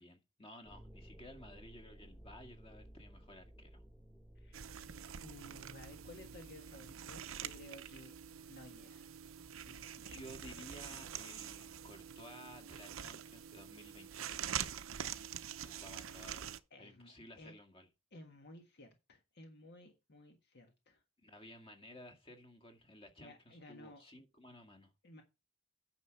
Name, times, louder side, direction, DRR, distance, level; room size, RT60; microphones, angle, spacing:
voice 1, 0.0-3.8 10.0-14.6 15.6-16.5 16.8-17.9 21.2-24.9, equal, 25° left, 2.0 m, -55 dB
sound 1, 0.6-10.1, equal, 10° left, 1.7 m, -59 dB
voice 2, 4.3-4.7 5.2-8.1 8.5-9.1 9.5-10.0 16.7-17.6 18.1-21.0 23.2-24.0 25.0-25.2, left 1 dB, 55° left, 1.6 m, -56 dB
sound 2, 4.5-16.6, right 9 dB, 80° right, 0.7 m, -45 dB
9.6 x 6.3 x 4.6 m
head